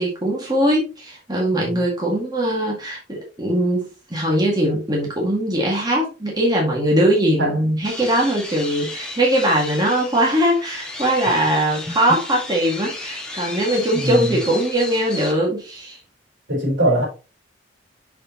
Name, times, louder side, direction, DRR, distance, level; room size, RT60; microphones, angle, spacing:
voice 1, 0.0-16.0, right 1 dB, 20° right, 2.0 m, -21 dB
voice 2, 7.4-7.7 13.9-14.4 16.5-17.0, right 1 dB, 75° right, 4.2 m, -22 dB
sound 1, 7.8-15.3, left 2 dB, 5° left, 1.6 m, -34 dB
6.6 x 6.6 x 3.0 m
head